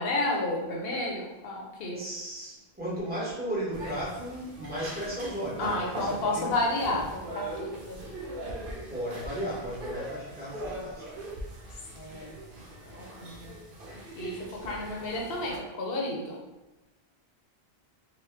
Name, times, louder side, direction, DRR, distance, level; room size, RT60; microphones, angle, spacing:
voice 1, 0.0-2.0 5.6-8.1 11.9-12.4 12.8-13.5 14.2-16.4, left 2 dB, 70° left, -1 dB, 0.9 m, -31 dB
voice 2, 2.0-6.5 8.9-11.1, right 1 dB, 10° right, -8 dB, 1.1 m, -35 dB
sound 1, 3.7-15.6, right 1 dB, 60° right, 0.8 m, -40 dB
3.0 x 2.2 x 3.2 m, 1.0 s
omnidirectional pair, 1.1 m